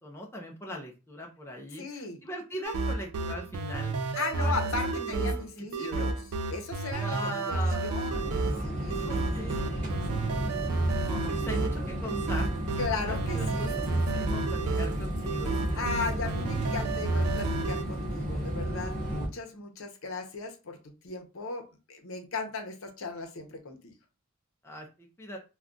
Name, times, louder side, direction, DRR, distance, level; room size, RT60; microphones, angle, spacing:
voice 1, 0.0-4.5 4.9-5.3 5.5-6.1 6.9-8.0 8.9-9.9 11.0-12.6 13.0-16.1 24.6-25.4, equal, 10° left, 0 dB, 0.4 m, -40 dB
voice 2, 1.8-2.2 4.1-6.2 6.5-8.3 8.6-9.1 9.6-9.9 12.8-13.8 15.8-20.8 21.0-23.9, left 4 dB, 65° left, 4 dB, 0.7 m, -37 dB
sound 1, 2.6-17.8, right 3 dB, 80° right, 0.4 m, -31 dB
sound 2, 8.1-19.3, equal, 35° right, 0.8 m, -33 dB
2.3 x 2.3 x 3.7 m, 0.30 s
head